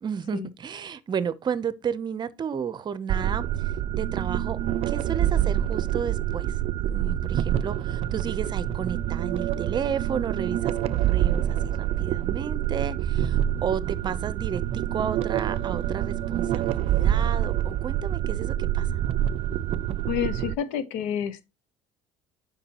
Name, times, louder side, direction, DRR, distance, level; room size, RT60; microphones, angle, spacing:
voice 1, 0.0-4.6 4.9-6.6 6.9-19.0, right 7 dB, 35° right, 0.7 m, -33 dB
sound 1, 3.1-20.6, right 11 dB, 55° right, 0.4 m, -26 dB
voice 2, 20.0-21.4, left 9 dB, 90° left, 1.0 m, -29 dB
8.6 x 5.3 x 3.0 m
cardioid pair, 110°, 12 cm